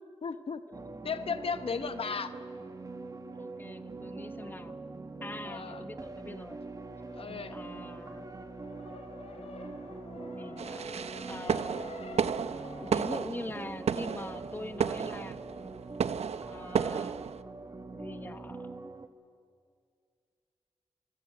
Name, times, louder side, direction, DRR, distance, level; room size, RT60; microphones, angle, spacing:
voice 1, 0.2-0.6 1.0-2.3 5.4-5.8 7.2-7.6, left 5 dB, 60° left, 10 dB, 1.0 m, -35 dB
sound 1, 0.7-19.1, right 3 dB, 35° right, 1.4 m, -43 dB
voice 2, 3.4-4.8 5.2-6.6 7.5-8.3 10.3-10.9 11.3-11.8 12.8-15.4 16.5-17.2 17.9-18.8, left 2 dB, 20° left, 9 dB, 1.1 m, -43 dB
sound 2, 5.9-12.9, left 3 dB, 80° left, 3.7 m, -49 dB
sound 3, 10.6-17.4, right 7 dB, 90° right, 0.6 m, -33 dB
25.5 x 22.0 x 7.7 m, 2.2 s
wide cardioid pair, 130°, 11 cm